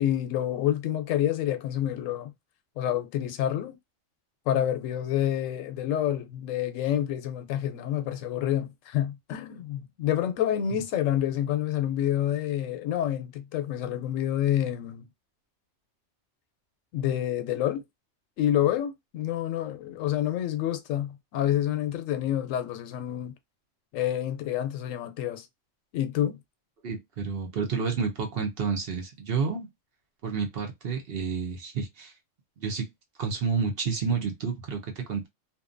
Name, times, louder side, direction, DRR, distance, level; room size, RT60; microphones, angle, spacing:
voice 1, 0.0-2.3 2.8-3.8 4.5-15.1 16.9-17.8 18.4-23.3 23.9-25.5 25.9-26.4, left 11 dB, 90° left, 1.0 m, -28 dB
voice 2, 26.8-29.7 30.2-32.1 32.6-32.9 33.2-35.3, right 5 dB, 55° right, 0.8 m, -30 dB
2.6 x 2.2 x 2.4 m
omnidirectional pair, 1.3 m